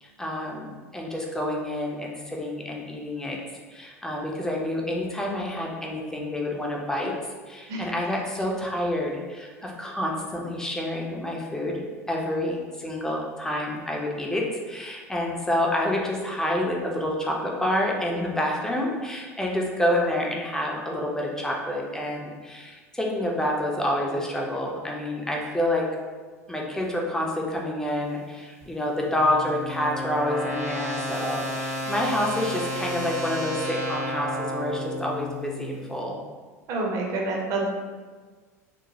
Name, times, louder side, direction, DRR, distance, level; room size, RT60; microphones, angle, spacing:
voice 1, 0.0-3.4 3.7-7.1 7.5-11.8 12.1-25.9 26.5-36.2, left 1 dB, 5° left, -2 dB, 0.4 m, -28 dB
sound 1, 28.6-35.7, equal, 80° right, 0.8 m, -32 dB
voice 2, 36.7-37.7, right 2 dB, 40° right, -1 dB, 0.6 m, -27 dB
2.9 x 2.0 x 2.7 m, 1.4 s
figure-of-eight pair, 75°, 8 cm